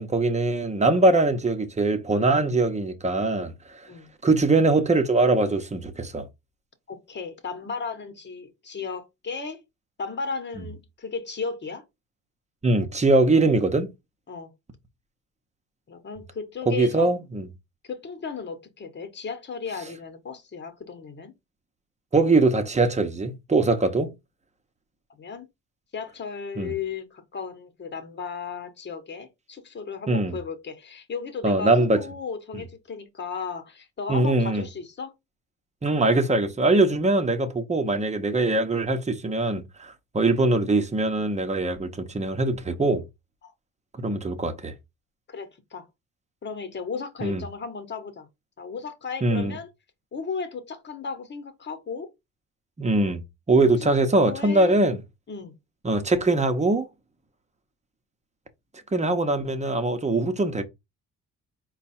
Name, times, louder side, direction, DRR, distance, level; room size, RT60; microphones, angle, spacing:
voice 1, 0.0-3.8 4.2-6.3 12.6-13.9 16.7-17.5 22.1-24.1 26.6-26.7 30.1-30.4 31.4-32.0 32.5-32.6 34.1-34.6 35.8-43.0 44.0-44.7 47.2-47.4 49.2-49.5 52.8-55.0 55.8-56.9 58.9-60.6, right 2 dB, 25° right, 1.0 m, -22 dB
voice 2, 6.9-9.6 10.0-11.8 14.3-14.5 15.9-17.1 17.8-21.3 25.1-25.5 25.9-35.1 43.4-43.5 45.3-45.9 46.4-48.3 48.6-49.7 50.1-52.1 53.5-53.8 54.1-54.8 55.3-55.5, left 5 dB, 35° left, 1.2 m, -35 dB
4.4 x 2.4 x 4.3 m
cardioid pair, 90°, 30 cm